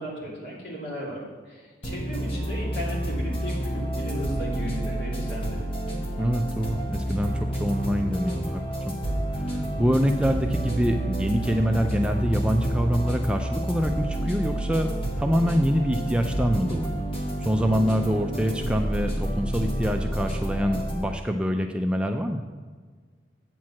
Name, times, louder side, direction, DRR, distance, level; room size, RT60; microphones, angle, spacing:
voice 1, 0.0-5.6, equal, 65° left, -4 dB, 2.8 m, -35 dB
sound 1, 1.8-21.0, right 1 dB, 30° left, 1.3 m, -29 dB
voice 2, 6.2-8.9 9.3-17.0 17.4-22.4, equal, 5° right, 4 dB, 0.3 m, -25 dB
8.4 x 4.6 x 7.3 m, 1.5 s
head